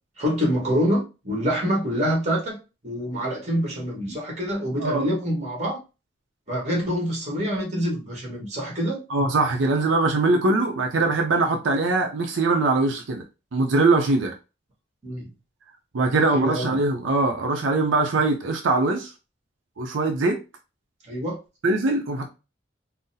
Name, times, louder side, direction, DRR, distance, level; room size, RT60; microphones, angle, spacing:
voice 1, 0.2-2.6 2.8-5.8 6.5-9.0 15.0-15.3 16.3-16.8 21.0-21.4, equal, 35° right, 1.3 m, -26 dB
voice 2, 9.1-13.2 13.5-14.4 15.9-19.1 19.8-20.4 21.6-22.3, right 3 dB, 90° right, 0.5 m, -22 dB
3.8 x 2.0 x 2.7 m
head